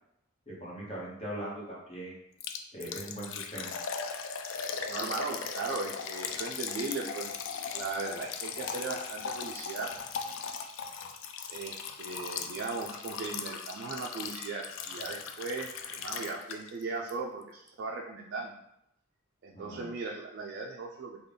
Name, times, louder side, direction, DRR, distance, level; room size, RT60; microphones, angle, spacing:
voice 1, 0.5-2.2 2.7-3.7 19.5-19.9, right 1 dB, 30° left, -6 dB, 1.0 m, -40 dB
Liquid, 2.4-16.8 17.1-17.2 17.7-17.8, left 6 dB, 65° left, 0.3 m, -38 dB
voice 2, 4.9-7.3 7.7-9.9 11.5-18.5 19.4-21.2, right 3 dB, 55° right, -1 dB, 0.3 m, -37 dB
3.6 x 2.2 x 3.3 m, 0.81 s
head